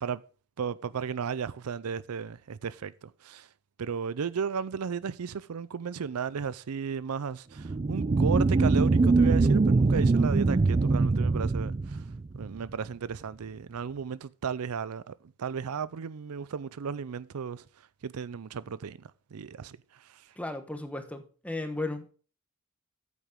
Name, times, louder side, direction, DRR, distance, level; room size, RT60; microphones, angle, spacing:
voice 1, 0.6-3.5 3.8-12.0 12.3-17.6 18.0-19.0 19.3-19.8, right 6 dB, 80° right, 0.5 m, -34 dB
sound 1, 7.6-12.6, right 3 dB, 30° right, 0.3 m, -23 dB
voice 2, 20.4-22.1, left 2 dB, 5° left, 1.0 m, -35 dB
9.0 x 8.3 x 3.6 m
head